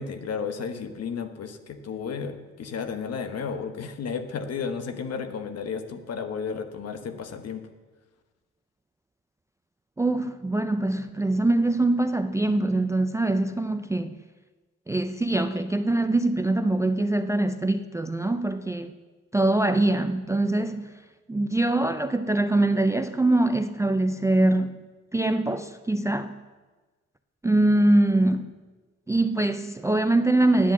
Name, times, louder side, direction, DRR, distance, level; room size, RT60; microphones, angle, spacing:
voice 1, 0.0-7.7, left 6 dB, 55° left, 1.2 m, -33 dB
voice 2, 10.0-14.2 14.9-18.9 19.3-20.9 21.3-24.8 25.1-26.4 27.4-28.5 29.1-30.7, right 2 dB, 10° right, 0.4 m, -23 dB
10.0 x 8.4 x 7.3 m
cardioid pair, 90°, 30 cm